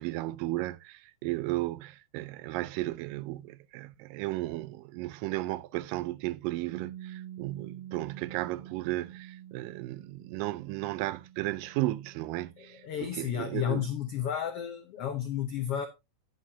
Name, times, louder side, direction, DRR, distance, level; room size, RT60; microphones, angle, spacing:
voice 1, 0.0-13.9, right 18 dB, 85° right, 2.3 m, -34 dB
Piano, 6.7-14.0, right 11 dB, 65° right, 2.2 m, -48 dB
voice 2, 12.8-15.9, left 9 dB, 85° left, 1.3 m, -32 dB
9.5 x 9.2 x 2.7 m
omnidirectional pair, 3.8 m